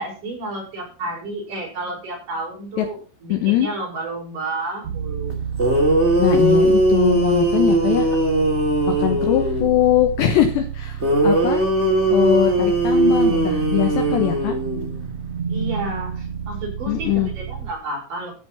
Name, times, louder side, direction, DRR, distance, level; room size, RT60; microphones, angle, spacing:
voice 1, 0.0-5.4 15.5-18.3, right 2 dB, 40° right, -3 dB, 7.8 m, -31 dB
voice 2, 3.3-3.7 6.2-8.1 8.9-11.6 12.1-14.5 16.9-17.3, left 11 dB, 70° left, 6 dB, 3.1 m, -21 dB
sound 1, 4.8-17.7, right 7 dB, 85° right, 1.4 m, -30 dB
sound 2, 5.3-5.4 5.6-9.7 11.0-15.0, right 1 dB, 20° right, 2.2 m, -19 dB
14.5 x 7.0 x 5.7 m, 0.35 s
omnidirectional pair, 5.6 m